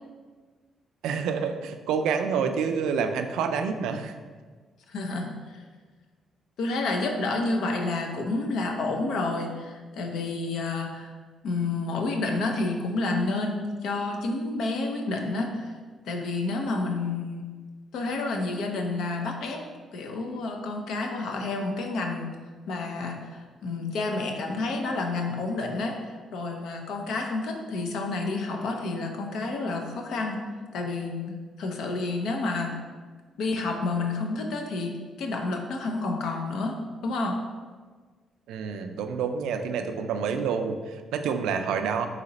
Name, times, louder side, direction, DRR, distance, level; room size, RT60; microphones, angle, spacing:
voice 1, 1.0-4.1 38.5-42.1, right 6 dB, 90° right, 7 dB, 0.3 m, -28 dB
voice 2, 4.9-5.6 6.6-11.1 11.4-15.7 16.0-17.5 17.9-19.6 19.9-22.3 22.7-30.4 30.7-32.7 33.4-34.9 35.2-36.8 37.0-37.3, left 3 dB, 75° left, 3 dB, 0.6 m, -29 dB
4.0 x 2.8 x 4.0 m, 1.5 s
cardioid pair, 90°, 0 cm